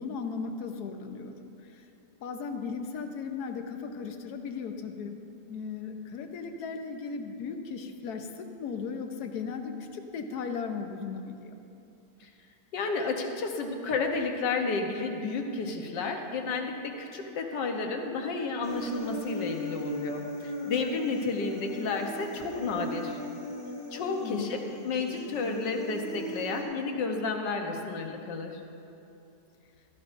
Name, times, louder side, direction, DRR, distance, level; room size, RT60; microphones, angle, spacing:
voice 1, 0.0-1.9 2.2-5.2 5.5-11.5 24.2-24.5, left 5 dB, 65° left, 5 dB, 1.3 m, -37 dB
voice 2, 12.7-23.2 23.9-28.6, left 4 dB, 85° left, 3 dB, 1.7 m, -31 dB
Human voice, 18.6-26.6, equal, 40° right, 2.2 m, -38 dB
16.0 x 13.0 x 2.6 m, 2.8 s
omnidirectional pair, 1.9 m